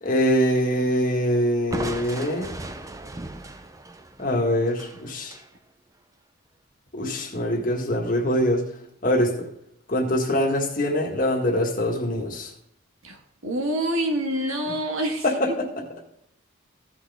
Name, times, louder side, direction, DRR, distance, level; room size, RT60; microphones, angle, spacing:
voice 1, 0.0-2.6 4.2-5.4 6.9-8.7 9.0-9.5 9.9-12.5 15.2-15.7, equal, 40° left, 1 dB, 1.7 m, -23 dB
Crushing, 1.7-5.5, right 2 dB, 15° right, 0.5 m, -36 dB
voice 2, 13.4-15.2, right 1 dB, 80° right, 3 dB, 1.7 m, -26 dB
15.0 x 6.1 x 3.5 m, 0.77 s
head